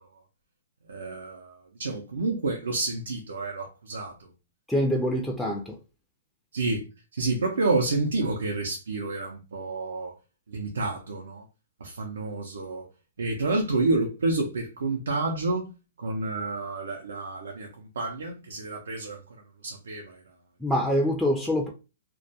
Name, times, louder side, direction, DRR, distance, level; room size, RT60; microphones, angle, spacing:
voice 1, 0.9-1.5 1.8-4.1 6.5-6.8 7.1-10.1 10.5-11.4 11.8-12.8 13.2-15.7 16.0-17.7 18.0-19.2 19.6-20.1, right 3 dB, 85° right, 0.5 m, -29 dB
voice 2, 4.7-5.8 20.6-21.7, equal, ahead, 0.3 m, -25 dB
2.2 x 2.1 x 2.6 m
hypercardioid pair, 145°, 0 cm